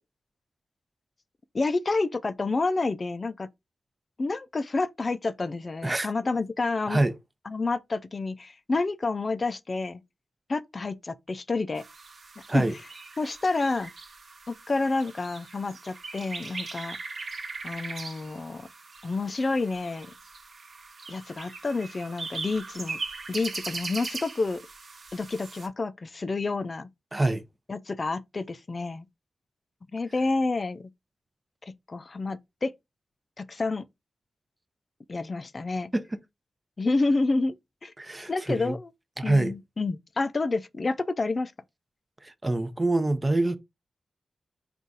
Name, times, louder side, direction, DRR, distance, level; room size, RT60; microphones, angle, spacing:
voice 1, 1.5-3.5 4.2-7.0 7.5-10.0 10.5-11.8 12.5-12.6 13.2-13.9 14.5-17.0 17.6-18.7 19.0-20.1 21.1-23.0 23.3-24.6 25.1-26.9 27.7-29.1 29.9-30.9 31.6-32.7 33.4-33.9 35.1-35.9 36.8-37.6 37.8-37.9 38.3-38.9 39.2-41.5, left 3 dB, 45° left, 0.4 m, -29 dB
sound 1, 11.7-25.7, right 3 dB, 60° right, 1.0 m, -40 dB
voice 2, 27.1-27.4 35.9-36.2 38.0-38.7 39.2-39.5 42.2-43.6, right 2 dB, 25° right, 0.6 m, -25 dB
3.9 x 2.4 x 3.9 m
cardioid pair, 55°, 0 cm